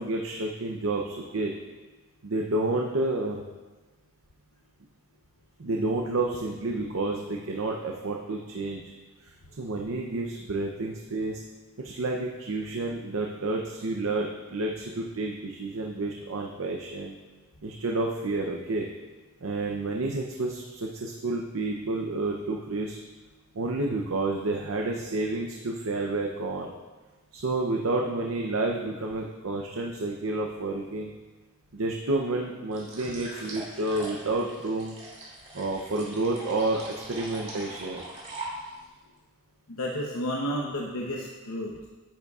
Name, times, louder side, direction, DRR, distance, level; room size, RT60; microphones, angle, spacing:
voice 1, 0.0-1.5 2.2-3.4 5.6-8.8 9.6-11.4 11.8-17.2 17.6-18.9 19.4-23.0 23.5-26.7 27.3-31.1 31.7-35.0 35.5-36.8 37.1-38.0, right 2 dB, 75° right, 0 dB, 0.7 m, -30 dB
sound 1, 32.7-38.9, right 1 dB, 35° right, 2.7 m, -41 dB
voice 2, 39.7-41.9, equal, 80° left, -2 dB, 0.9 m, -32 dB
10.0 x 9.3 x 2.4 m, 1.2 s
head